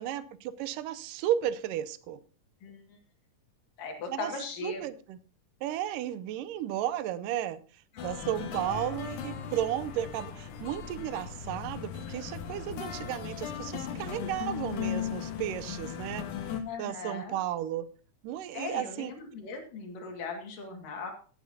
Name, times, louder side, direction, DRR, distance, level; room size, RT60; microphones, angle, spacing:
voice 1, 0.0-2.2 4.1-4.3 4.6-5.2 5.6-7.6 8.0-16.3 16.8-17.9 18.2-19.1, right 11 dB, 85° right, 2.3 m, -34 dB
voice 2, 2.6-3.0 3.8-4.9 7.9-8.1 16.6-17.4 18.5-21.1, left 4 dB, 90° left, 3.6 m, -38 dB
sound 1, 8.0-16.6, left 8 dB, 75° left, 2.6 m, -37 dB
16.5 x 9.3 x 2.7 m
omnidirectional pair, 3.7 m